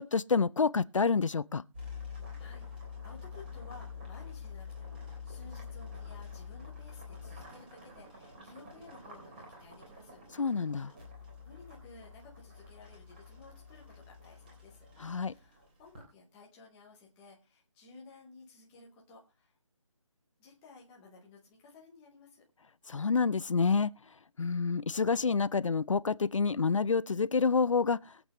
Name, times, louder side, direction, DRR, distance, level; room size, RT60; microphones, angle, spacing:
voice 1, 0.0-1.6 10.4-10.9 15.0-15.3 22.9-23.9 24.4-28.1, left 5 dB, 70° left, 0.6 m, -28 dB
sound 1, 1.7-16.0, left 5 dB, 20° right, 3.4 m, -47 dB
voice 2, 2.1-10.2 10.5-10.7 11.4-14.8 15.2-19.6 20.4-22.4, left 4 dB, 5° left, 0.7 m, -56 dB
21.5 x 8.1 x 3.0 m
figure-of-eight pair, 175°, 17 cm